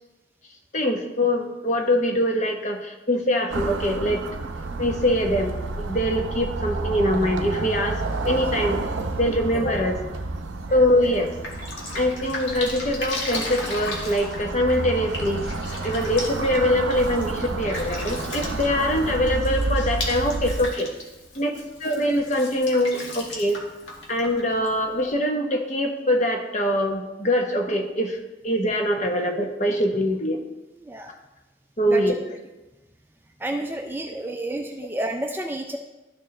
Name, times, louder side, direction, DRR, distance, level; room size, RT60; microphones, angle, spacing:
voice 1, 0.7-4.2 4.8-8.0 8.2-8.8 9.2-10.0 10.7-11.3 11.9-15.5 15.8-20.9 21.4-23.6 24.1-28.2 28.4-30.4 31.8-32.1, left 1 dB, 40° left, 3 dB, 0.9 m, -23 dB
sound 1, 3.5-20.7, right 3 dB, 90° right, 0.6 m, -30 dB
Drip, 11.0-25.1, left 2 dB, 80° left, 1.6 m, -36 dB
voice 2, 30.8-31.1 31.9-32.0 33.4-35.8, right 1 dB, 10° right, 3 dB, 0.4 m, -31 dB
12.5 x 4.4 x 3.2 m, 1.1 s
head